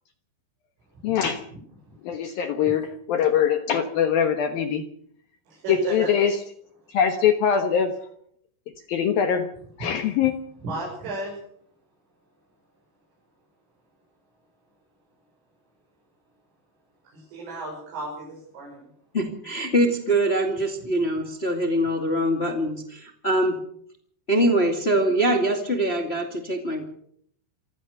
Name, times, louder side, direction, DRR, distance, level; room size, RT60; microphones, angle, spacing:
voice 1, 1.0-1.4 2.0-4.8 5.7-6.4 6.9-8.0 8.9-9.5 9.8-10.3, left 8 dB, 70° left, 7 dB, 2.4 m, -22 dB
voice 2, 5.5-6.1 10.6-11.4 17.1-18.9, right 2 dB, 75° right, -2 dB, 8.8 m, -33 dB
voice 3, 19.1-23.6 24.3-26.9, right 1 dB, 45° left, 4 dB, 0.8 m, -23 dB
26.5 x 15.5 x 6.6 m, 0.66 s
omnidirectional pair, 5.7 m